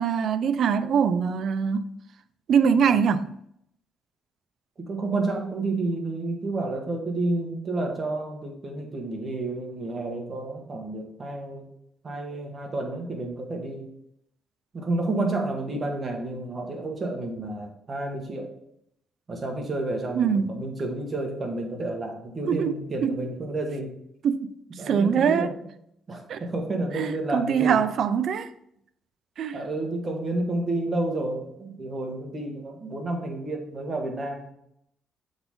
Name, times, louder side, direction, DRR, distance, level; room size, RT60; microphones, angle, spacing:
voice 1, 0.0-1.9 2.5-3.3 20.2-20.5 22.5-22.7 23.0-23.2 24.2-24.4 24.9-25.5 26.3-26.4 26.9-28.5 29.4-29.6, right 7 dB, 65° right, 0.5 m, -23 dB
voice 2, 4.8-11.7 12.0-13.9 14.7-18.5 19.3-23.9 24.8-25.6 26.1-27.8 29.5-34.5, right 2 dB, 35° right, 1.6 m, -30 dB
7.8 x 4.0 x 3.8 m
cardioid pair, 90°, 0 cm